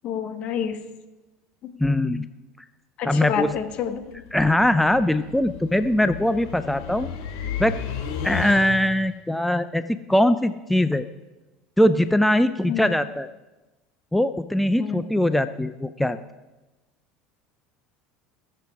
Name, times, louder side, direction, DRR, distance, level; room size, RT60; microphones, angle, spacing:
voice 1, 0.0-0.8 1.6-1.7 3.0-4.2 12.7-12.9 14.8-15.0, left 8 dB, 55° left, 8 dB, 1.4 m, -28 dB
voice 2, 1.8-2.3 3.0-3.5 4.3-7.1 7.6-7.7 8.2-11.1 11.8-13.3 14.1-16.2, left 1 dB, 5° left, 11 dB, 0.5 m, -21 dB
sound 1, 3.5-9.1, left 6 dB, 75° left, 2.1 m, -34 dB
18.5 x 7.8 x 4.9 m, 1.1 s
hypercardioid pair, 85°, 2 cm